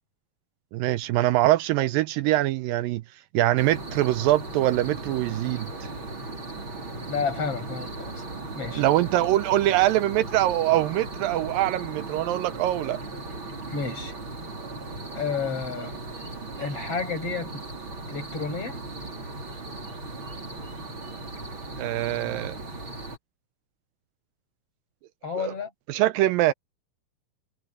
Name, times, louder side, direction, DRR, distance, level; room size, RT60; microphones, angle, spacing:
voice 1, 0.7-3.0 3.3-5.9 8.8-13.0 21.8-22.6 25.4-25.5 25.9-26.5, right 15 dB, 80° right, 2.3 m, -23 dB
sound 1, 3.6-23.2, right 2 dB, 30° right, 5.1 m, -37 dB
voice 2, 7.1-8.2 8.5-8.8 13.7-14.1 15.1-16.0 16.6-17.6 18.1-18.8 25.2-25.7, left 5 dB, 40° left, 7.9 m, -31 dB
omnidirectional pair, 4.2 m